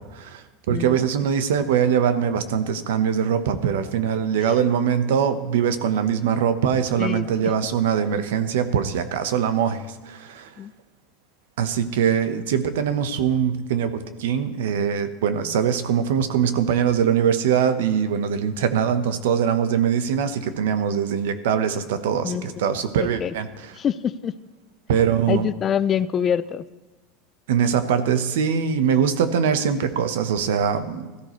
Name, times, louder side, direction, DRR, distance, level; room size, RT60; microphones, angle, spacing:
voice 1, 0.1-10.5 11.6-23.7 24.9-25.5 27.5-31.1, right 8 dB, 85° right, 10 dB, 1.0 m, -22 dB
voice 2, 7.0-7.5 10.6-10.7 22.2-22.5 23.0-23.3 23.8-24.3 25.3-26.6, left 8 dB, 30° left, 16 dB, 0.4 m, -25 dB
16.5 x 13.5 x 3.2 m, 1.2 s
supercardioid pair, 130°, 0 cm